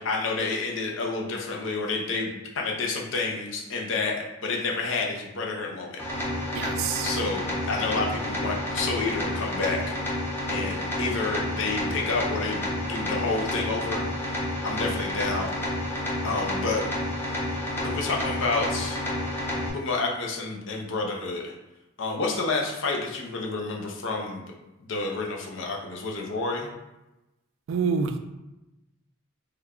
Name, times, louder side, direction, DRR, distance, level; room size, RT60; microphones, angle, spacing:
voice 1, 0.0-6.0 7.0-9.9 10.5-14.0 14.6-15.5 16.2-16.8 17.8-19.0 19.7-21.5 22.0-24.4 24.8-26.7, left 3 dB, 65° left, 0 dB, 0.6 m, -29 dB
sound 1, 6.0-19.7, left 1 dB, 10° left, 0.5 m, -30 dB
voice 2, 6.5-7.1 27.7-28.2, right 6 dB, 70° right, 8 dB, 0.3 m, -27 dB
3.2 x 2.2 x 3.6 m, 0.98 s
head